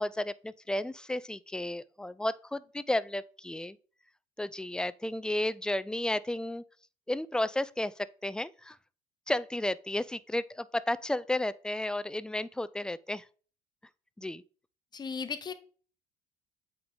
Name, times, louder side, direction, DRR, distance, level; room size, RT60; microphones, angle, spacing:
voice 1, 0.0-3.8 4.4-6.6 7.1-7.9 8.2-8.8 9.3-13.2 14.2-14.4, left 1 dB, 5° left, 0.3 m, -33 dB
voice 2, 14.9-15.5, left 5 dB, 30° left, 0.9 m, -36 dB
8.5 x 3.8 x 3.8 m
hypercardioid pair, 70°, 15 cm